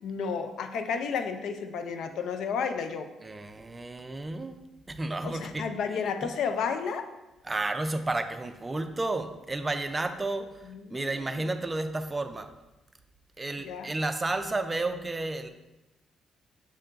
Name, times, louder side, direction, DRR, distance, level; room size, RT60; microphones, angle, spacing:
voice 1, 0.0-3.1 5.2-7.1 10.7-11.4 13.6-13.9, left 6 dB, 75° left, 8 dB, 0.4 m, -32 dB
voice 2, 3.2-4.6 4.9-5.7 7.4-12.5 13.4-15.5, right 2 dB, 20° right, 7 dB, 0.4 m, -32 dB
6.2 x 2.2 x 3.8 m, 1.0 s
cardioid pair, 90°, 0 cm